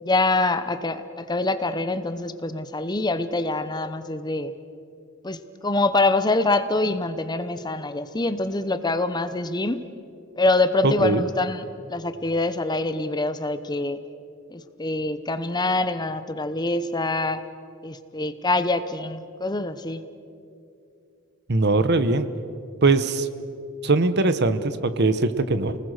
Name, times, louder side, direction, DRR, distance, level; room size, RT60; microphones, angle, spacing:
voice 1, 0.0-4.5 5.2-9.8 10.4-14.0 14.5-17.4 17.8-20.0, left 2 dB, 20° left, 11 dB, 0.8 m, -25 dB
voice 2, 10.8-11.2 21.5-22.3 22.8-23.3 23.8-25.8, right 3 dB, 55° right, 12 dB, 1.0 m, -21 dB
29.0 x 20.0 x 6.5 m, 2.5 s
head